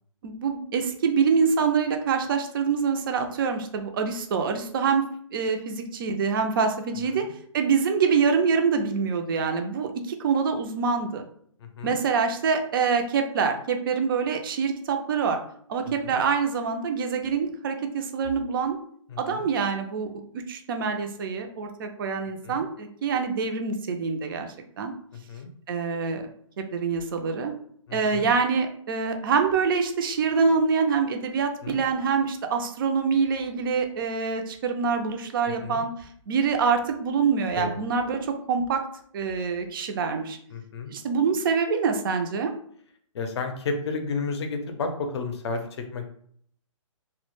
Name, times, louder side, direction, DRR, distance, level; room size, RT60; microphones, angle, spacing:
voice 1, 0.2-7.2 7.5-11.2 11.8-15.4 15.7-18.8 19.2-24.5 24.8-24.9 25.7-26.3 26.7-27.5 27.9-35.9 36.3-38.8 39.1-40.4 40.9-42.5, right 5 dB, 40° right, 5 dB, 0.4 m, -25 dB
voice 2, 11.6-11.9 16.0-16.2 19.1-19.5 22.4-22.6 25.1-25.5 27.9-28.3 31.6-31.8 35.6-35.8 37.5-37.7 40.5-40.9 43.1-46.1, left 4 dB, 55° left, 5 dB, 0.5 m, -32 dB
2.1 x 2.1 x 3.0 m, 0.63 s
hypercardioid pair, 155°, 17 cm